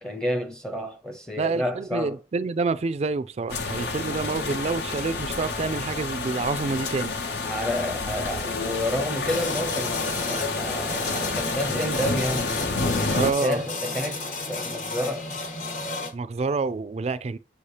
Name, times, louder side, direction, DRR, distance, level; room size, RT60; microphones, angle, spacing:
voice 1, 0.0-2.2 7.4-15.3, left 1 dB, 5° left, 0.6 m, -30 dB
voice 2, 1.4-7.2 13.1-13.6 16.1-17.4, right 4 dB, 35° right, 0.3 m, -28 dB
sound 1, 3.5-13.3, left 3 dB, 65° left, 0.9 m, -29 dB
sound 2, 9.3-16.1, left 2 dB, 50° left, 1.1 m, -32 dB
6.9 x 2.8 x 4.8 m
head